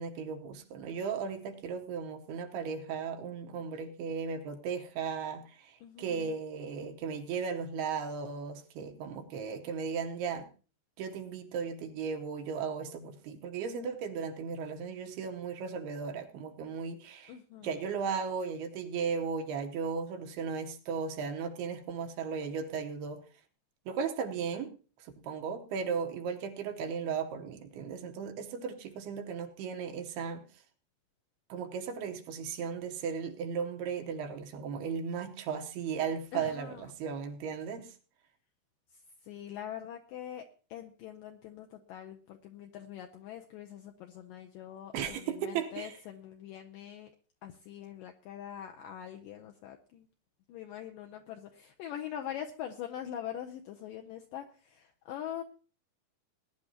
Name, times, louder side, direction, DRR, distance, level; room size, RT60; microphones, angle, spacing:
voice 1, 0.0-10.5 11.0-17.3 17.6-23.2 23.9-24.7 25.0-30.5 31.5-37.9 44.9-45.9, right 6 dB, 75° right, 4 dB, 3.0 m, -36 dB
voice 2, 5.8-6.3 17.3-17.7 36.3-36.9 39.2-40.5 40.7-47.1 47.4-50.1 50.5-55.4, left 10 dB, 80° left, 4 dB, 2.0 m, -43 dB
20.5 x 11.0 x 2.9 m, 0.38 s
omnidirectional pair, 4.8 m